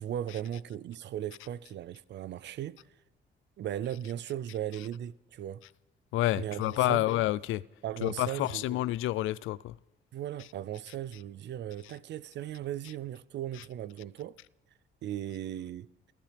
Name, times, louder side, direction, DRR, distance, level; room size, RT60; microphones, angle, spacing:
voice 1, 0.0-2.8 3.6-5.6 6.4-7.1 7.8-8.8 10.1-14.4 15.0-15.9, right 11 dB, 65° right, 0.5 m, -37 dB
voice 2, 6.1-7.6 8.0-9.7, left 15 dB, 85° left, 0.4 m, -29 dB
28.0 x 14.5 x 3.4 m
cardioid pair, 90°, 20 cm